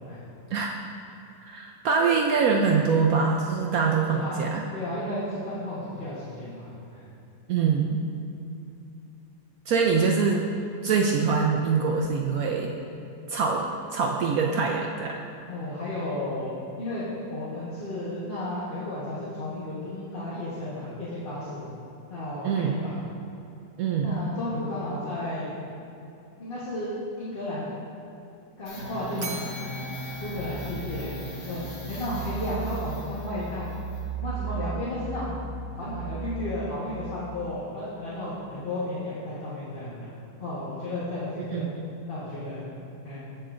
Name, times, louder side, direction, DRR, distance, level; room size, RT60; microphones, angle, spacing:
voice 1, 1.4-4.6 7.5-8.0 9.7-10.5 10.8-12.7 13.3-15.2 22.4-22.7 23.8-24.2 41.5-41.9, right 5 dB, 70° right, 1 dB, 0.9 m, -24 dB
voice 2, 4.1-7.0 15.4-17.0 17.3-21.7 22.1-23.0 24.0-25.5 26.4-27.7 28.6-29.4 30.1-31.6 31.9-33.7 34.2-35.4 35.7-40.1 40.4-41.7 42.1-42.7 43.0-43.2, left 1 dB, 35° left, -9 dB, 1.3 m, -33 dB
sound 1, 28.7-37.1, right 3 dB, 85° left, 2.3 m, -36 dB
Bell, 29.2-31.5, right 2 dB, 45° right, 0.8 m, -40 dB
15.0 x 5.6 x 2.5 m, 2.8 s
omnidirectional pair, 1.8 m